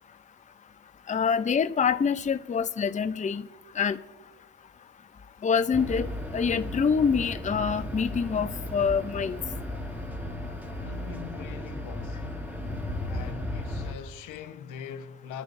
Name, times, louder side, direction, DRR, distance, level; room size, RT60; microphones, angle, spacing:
voice 1, 1.1-3.4 3.8-4.0 5.4-6.1 6.3-9.4, left 6 dB, 25° left, 0.6 m, -25 dB
sound 1, 5.7-13.9, left 1 dB, 5° right, 1.6 m, -35 dB
voice 2, 10.8-12.3 13.1-15.4, left 8 dB, 90° left, 1.0 m, -42 dB
28.5 x 9.8 x 2.6 m
cardioid pair, 90°, 30 cm